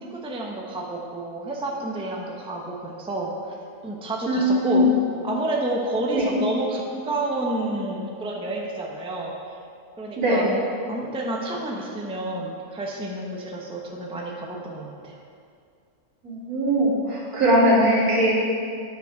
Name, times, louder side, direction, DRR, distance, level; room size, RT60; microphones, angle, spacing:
voice 1, 0.0-3.5 3.8-4.9 5.2-9.3 10.0-10.5 10.9-15.2, right 2 dB, 5° right, -1 dB, 0.7 m, -29 dB
voice 2, 4.3-4.9 6.1-6.3 10.2-10.5 16.2-18.3, equal, 75° right, -9 dB, 3.4 m, -20 dB
9.4 x 5.4 x 6.4 m, 2.3 s
omnidirectional pair, 1.6 m